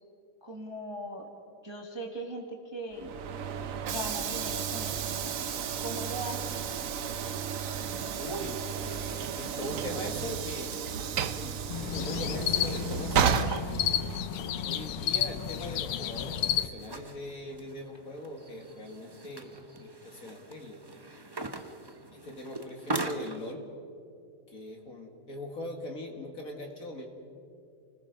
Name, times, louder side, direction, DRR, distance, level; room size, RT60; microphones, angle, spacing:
voice 1, 0.4-1.3 1.6-3.1 3.8-5.3 5.8-6.7, right 1 dB, 15° right, 2 dB, 1.7 m, -39 dB
Train / Sliding door, 2.9-14.4, right 7 dB, 60° right, 0.9 m, -33 dB
sound 1, 4.0-23.5, right 2 dB, 30° right, 0.4 m, -45 dB
voice 2, 8.2-10.8 11.2-13.4 14.3-19.5 19.8-20.9 22.2-23.6 24.5-27.1, left 1 dB, 40° left, 2 dB, 2.5 m, -41 dB
sound 2, 11.7-16.7, left 10 dB, 75° left, 1.6 m, -31 dB
29.5 x 20.0 x 5.3 m, 2.5 s
omnidirectional pair, 2.3 m